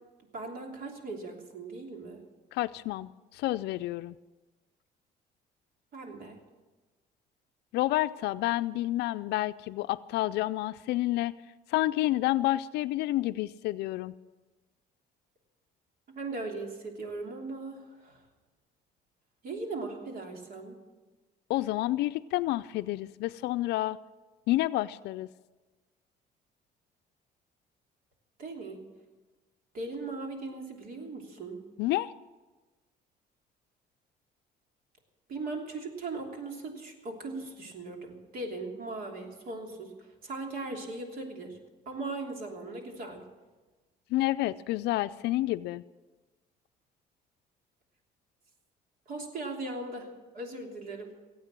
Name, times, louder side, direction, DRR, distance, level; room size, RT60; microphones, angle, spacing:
voice 1, 0.3-2.2 5.9-6.4 16.1-18.2 19.4-20.8 28.4-28.8 29.7-31.6 35.3-41.6 41.8-43.2 49.1-50.1 50.3-51.1, right 3 dB, 60° right, 2 dB, 3.1 m, -39 dB
voice 2, 2.5-4.1 7.7-11.3 11.7-14.1 21.5-24.0 24.5-25.3 31.8-32.1 44.1-45.8, left 16 dB, 80° left, 13 dB, 0.4 m, -29 dB
17.5 x 8.7 x 7.5 m, 1.2 s
cardioid pair, 110°, 17 cm